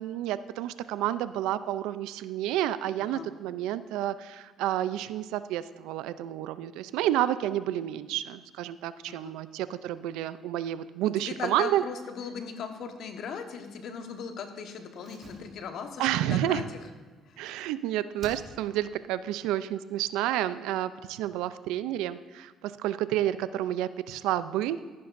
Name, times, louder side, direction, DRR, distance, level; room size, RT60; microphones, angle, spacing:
voice 1, 0.0-11.8 16.0-16.6 17.4-24.8, right 12 dB, 85° right, 14 dB, 0.4 m, -30 dB
voice 2, 11.2-16.6 17.3-17.4, left 6 dB, 65° left, 5 dB, 1.3 m, -38 dB
Slam, 15.0-17.7 18.2-18.9 19.2-19.3, right 2 dB, 45° right, 2.3 m, -51 dB
14.5 x 11.0 x 2.6 m, 1.4 s
cardioid pair, 95°, 0 cm